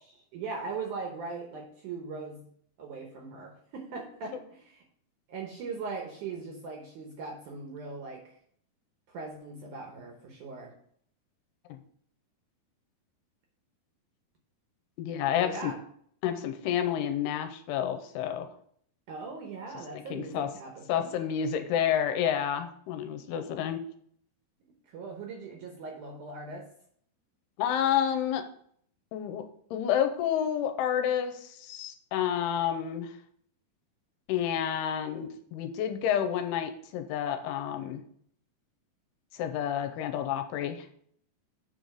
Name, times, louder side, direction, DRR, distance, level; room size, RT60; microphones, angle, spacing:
voice 1, 0.3-2.4 2.8-4.8 5.3-8.3 9.1-10.7 15.4-15.8 19.1-21.1 24.9-26.7, right 4 dB, 70° right, 1 dB, 2.0 m, -40 dB
voice 2, 15.0-15.7 16.2-18.5 20.1-20.5 20.9-23.8 27.6-28.4 29.1-33.2 34.3-38.0 39.3-40.9, left 9 dB, 90° left, 8 dB, 2.7 m, -29 dB
7.0 x 4.0 x 6.3 m, 0.63 s
omnidirectional pair, 4.7 m